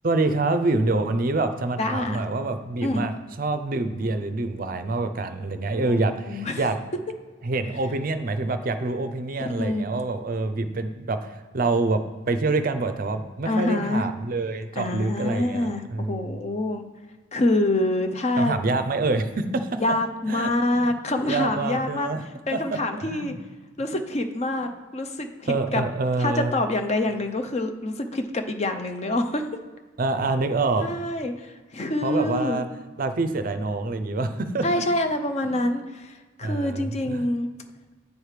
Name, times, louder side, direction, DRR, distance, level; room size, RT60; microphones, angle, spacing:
voice 1, 0.0-6.8 7.4-12.0 12.3-16.4 18.4-19.8 20.3-20.5 20.7-20.9 21.3-22.2 22.5-22.6 23.0-23.4 25.5-26.5 30.0-30.9 32.0-32.7 33.0-34.8 35.5-35.7 36.4-37.3, right 3 dB, 45° right, 9 dB, 0.5 m, -26 dB
voice 2, 1.8-2.2 2.8-3.2 5.8-6.6 9.4-10.0 13.5-14.0 14.8-16.8 17.3-18.6 19.8-22.1 22.5-23.3 23.8-25.8 26.2-29.6 30.8-32.6 34.6-37.5, left 1 dB, 35° left, 7 dB, 0.6 m, -26 dB
8.2 x 4.9 x 4.9 m, 1.3 s
head